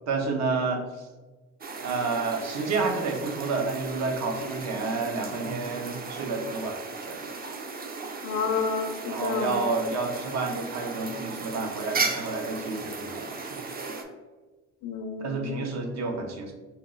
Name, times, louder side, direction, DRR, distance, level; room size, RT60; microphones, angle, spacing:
voice 1, 0.1-1.1 1.8-7.2 9.1-13.6 15.2-16.5, right 3 dB, 65° right, 3 dB, 0.8 m, -30 dB
sound 1, 1.6-14.0, right 4 dB, 30° right, 0.5 m, -36 dB
voice 2, 8.2-9.6 14.8-15.6, left 5 dB, 65° left, 6 dB, 0.5 m, -30 dB
4.4 x 2.0 x 3.8 m, 1.3 s
cardioid pair, 90°, 30 cm